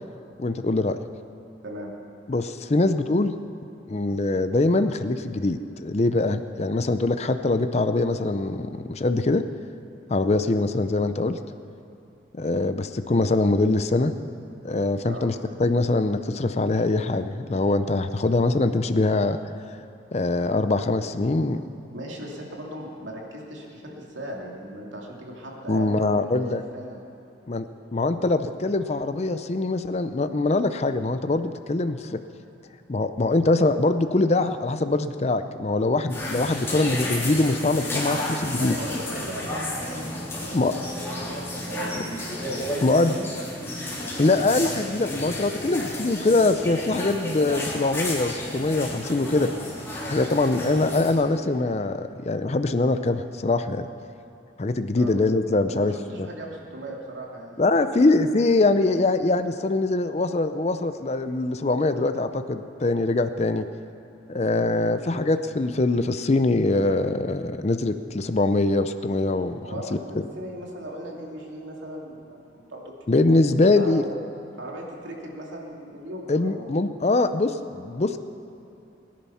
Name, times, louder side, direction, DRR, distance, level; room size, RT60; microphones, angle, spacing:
voice 1, 0.4-1.0 2.3-3.3 3.9-9.4 10.1-11.4 12.3-14.1 14.6-15.3 15.6-19.4 20.1-21.6 25.7-26.6 27.5-27.6 27.9-32.2 32.9-38.7 40.5-40.8 42.8-43.1 44.2-49.5 50.1-53.9 54.6-55.9 56.2-56.3 57.6-63.7 64.3-69.6 73.1-74.0 76.3-78.2, left 2 dB, 35° left, 10 dB, 0.5 m, -23 dB
voice 2, 21.9-27.0 38.4-41.4 41.6-42.3 42.7-43.5 54.9-55.1 55.6-58.1 64.7-64.9 69.6-72.9 73.3-74.1 74.5-76.8, right 1 dB, 80° right, -1 dB, 2.6 m, -38 dB
sound 1, 36.1-51.1, left 1 dB, 15° left, 3.4 m, -32 dB
21.5 x 10.5 x 5.7 m, 2.9 s
head